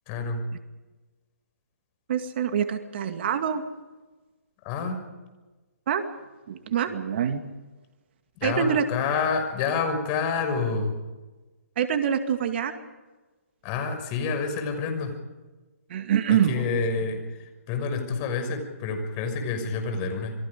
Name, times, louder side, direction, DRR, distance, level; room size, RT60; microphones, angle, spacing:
voice 1, 0.1-0.4 4.6-5.0 8.4-10.9 13.6-15.1 16.3-20.3, left 5 dB, 30° left, 5 dB, 6.3 m, -28 dB
voice 2, 2.1-3.6 5.9-6.0 6.5-7.4 8.4-8.9 11.8-12.7 15.9-16.8, right 8 dB, 45° right, 7 dB, 2.3 m, -25 dB
28.0 x 23.5 x 5.2 m, 1.2 s
hypercardioid pair, 140°, 8 cm